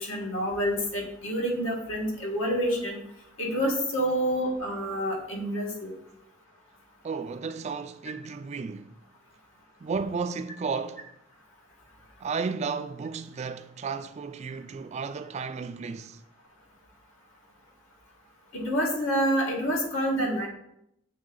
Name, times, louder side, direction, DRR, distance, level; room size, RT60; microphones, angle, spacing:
voice 1, 0.0-3.0 3.4-5.9 18.5-20.5, equal, 70° left, 1.5 m, -28 dB
voice 2, 7.0-8.9 9.8-11.1 12.2-16.2, right 5 dB, 35° right, 0.3 m, -33 dB
7.4 x 3.4 x 3.8 m
head